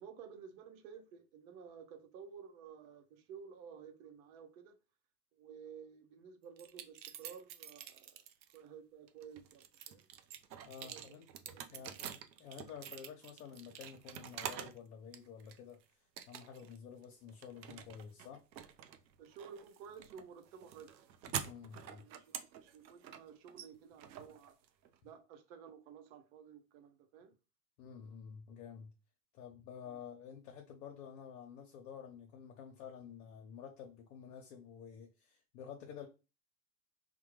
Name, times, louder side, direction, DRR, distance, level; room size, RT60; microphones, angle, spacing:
voice 1, 0.0-4.8 5.3-8.2 8.5-10.1 10.8-12.0 19.2-20.9 21.9-24.6 25.0-27.4 29.8-30.0, right 7 dB, 55° right, 0.8 m, -54 dB
sound 1, 6.6-8.6 9.1-14.8 15.1-15.7 16.2-16.8 17.0-25.0, right 9 dB, 90° right, 0.6 m, -47 dB
voice 2, 10.7-11.3 11.7-12.1 12.4-18.4 21.4-22.1 27.8-28.9 29.3-36.1, left 7 dB, 60° left, 0.8 m, -50 dB
3.6 x 2.3 x 3.1 m
hypercardioid pair, 110°, 49 cm